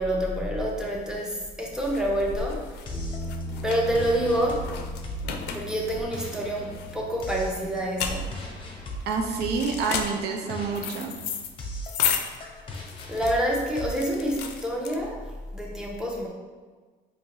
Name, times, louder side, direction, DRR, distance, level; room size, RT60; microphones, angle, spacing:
voice 1, 0.0-3.0 3.6-4.7 5.5-8.3 12.2-12.4 13.1-15.2 15.5-16.3, equal, 5° right, -2 dB, 0.8 m, -27 dB
sound 1, 1.0-15.4, left 7 dB, 80° left, 0.4 m, -34 dB
sound 2, 2.9-14.6, equal, 30° left, 0.7 m, -39 dB
sound 3, 2.9-11.8, equal, 45° right, 1.2 m, -41 dB
voice 2, 9.1-11.1, right 5 dB, 75° right, 3 dB, 0.6 m, -28 dB
4.4 x 2.9 x 2.7 m, 1.4 s
cardioid pair, 110°, 17 cm